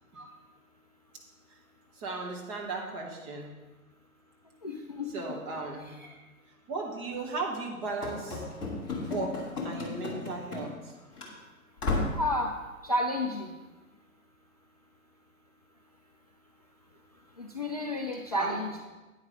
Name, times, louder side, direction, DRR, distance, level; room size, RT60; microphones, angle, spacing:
voice 1, 1.9-3.5 5.1-6.0 6.7-8.4 9.0-10.9 18.3-18.6, right 3 dB, 20° right, -1 dB, 1.4 m, -36 dB
voice 2, 4.6-5.1 6.0-6.1 12.1-12.5 12.8-13.5 17.4-18.7, left 1 dB, 30° left, 0 dB, 0.4 m, -31 dB
Run / Slam, 8.0-10.9 11.2-11.3 11.8-12.3, left 3 dB, 10° left, 1.1 m, -33 dB
9.3 x 9.1 x 3.7 m, 1.2 s
figure-of-eight pair, 125°, 44 cm